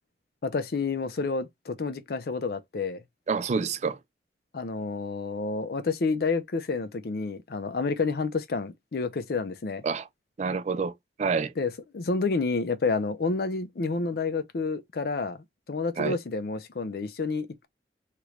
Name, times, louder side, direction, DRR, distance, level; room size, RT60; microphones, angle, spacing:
voice 1, 0.4-3.0 4.5-9.8 11.6-17.7, left 4 dB, 60° left, 0.5 m, -29 dB
voice 2, 3.3-4.0 9.8-10.1 10.4-10.9 11.2-11.5 16.0-16.2, right 5 dB, 40° right, 0.3 m, -27 dB
3.0 x 2.4 x 3.0 m
head